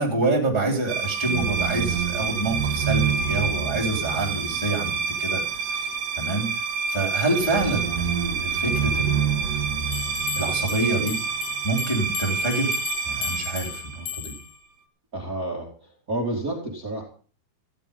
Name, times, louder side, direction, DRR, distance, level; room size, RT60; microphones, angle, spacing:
voice 1, 0.0-4.9 5.2-5.9 6.2-9.6 10.3-11.2 11.6-12.8 13.0-14.3, right 2 dB, 10° left, 0 dB, 2.7 m, -27 dB
sound 1, 0.9-14.5, right 5 dB, 60° right, 3.2 m, -27 dB
sound 2, 9.9-14.6, left 10 dB, 75° left, 3.3 m, -35 dB
voice 2, 15.1-17.0, right 1 dB, 25° right, 0 dB, 2.3 m, -30 dB
15.0 x 11.0 x 5.3 m, 0.42 s
omnidirectional pair, 4.7 m